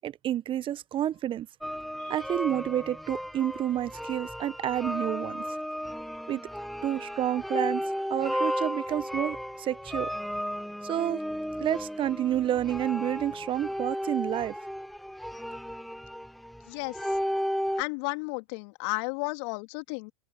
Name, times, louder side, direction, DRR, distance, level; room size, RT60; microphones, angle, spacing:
voice 1, 0.0-1.5 2.0-5.5 6.3-6.4 6.8-7.8 8.1-10.1 10.8-11.2 11.6-14.6, right 11 dB, 30° right, 1.2 m, -29 dB
sound 1, 1.6-17.8, equal, ahead, 1.4 m, -34 dB
voice 2, 16.6-17.0 17.8-20.1, left 31 dB, 50° left, 2.9 m, -33 dB
open air
hypercardioid pair, 100°, 18 cm